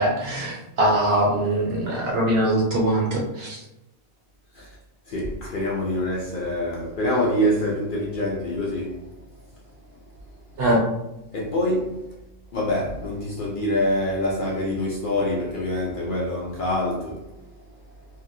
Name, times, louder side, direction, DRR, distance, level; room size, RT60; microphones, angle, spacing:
voice 1, 0.0-3.6 10.6-10.8, right 1 dB, 55° right, 0.8 m, -22 dB
voice 2, 5.1-9.1 11.3-12.0 12.5-17.3, left 1 dB, 70° left, 0.4 m, -25 dB
2.9 x 2.5 x 2.5 m
omnidirectional pair, 1.5 m